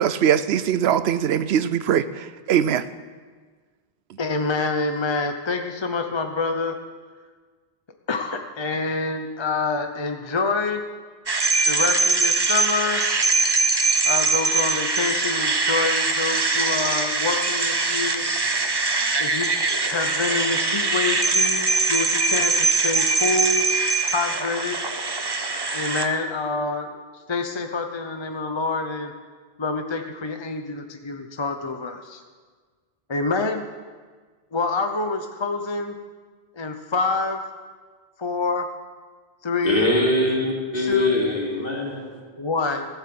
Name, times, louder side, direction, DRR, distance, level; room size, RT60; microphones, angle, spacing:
voice 1, 0.0-2.9, right 9 dB, 85° right, 15 dB, 0.9 m, -21 dB
voice 2, 4.2-6.7 8.1-10.8 11.7-13.0 14.1-18.4 19.2-23.6 24.1-24.8 25.7-27.0 27.3-29.1 29.6-32.2 33.1-33.7 34.5-35.9 36.5-37.4 38.2-38.7 39.4-39.9 40.8-41.3 42.2-42.9, left 4 dB, 30° left, 5 dB, 0.7 m, -26 dB
sound 1, 11.3-26.1, right 3 dB, 25° right, 0.8 m, -22 dB
voice 3, 39.6-42.2, left 1 dB, 60° left, -3 dB, 3.2 m, -23 dB
15.5 x 8.1 x 7.8 m, 1.5 s
omnidirectional pair, 1.0 m